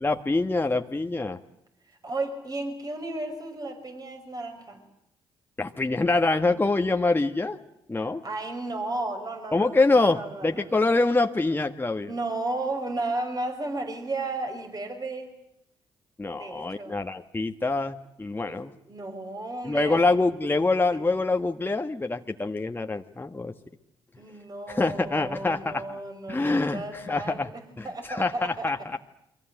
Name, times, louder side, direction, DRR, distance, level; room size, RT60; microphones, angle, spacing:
voice 1, 0.0-1.4 5.6-7.6 7.9-8.2 9.5-12.1 16.2-18.7 19.6-23.5 24.7-25.8 26.3-27.5 27.8-29.0, left 3 dB, 20° left, 5 dB, 1.5 m, -25 dB
voice 2, 1.9-4.8 8.0-10.9 12.1-15.3 16.3-17.0 18.4-20.1 20.9-21.0 24.2-28.7, right 2 dB, 35° right, 6 dB, 5.7 m, -34 dB
29.5 x 23.5 x 7.8 m, 0.81 s
hypercardioid pair, 45°, 11 cm